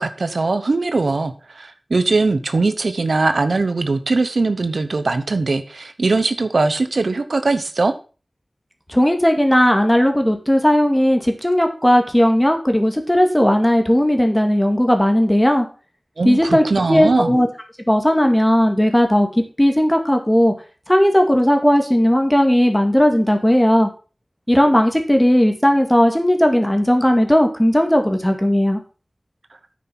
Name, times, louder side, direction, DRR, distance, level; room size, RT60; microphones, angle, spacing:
voice 1, 0.0-7.9 16.2-17.4, right 3 dB, 80° right, 9 dB, 1.0 m, -20 dB
voice 2, 8.9-15.7 16.2-17.5 17.9-19.3 19.6-20.5 20.9-23.9 24.5-28.8, equal, 15° left, 5 dB, 2.1 m, -16 dB
9.4 x 6.4 x 6.0 m, 0.36 s
wide cardioid pair, 55°, 0 cm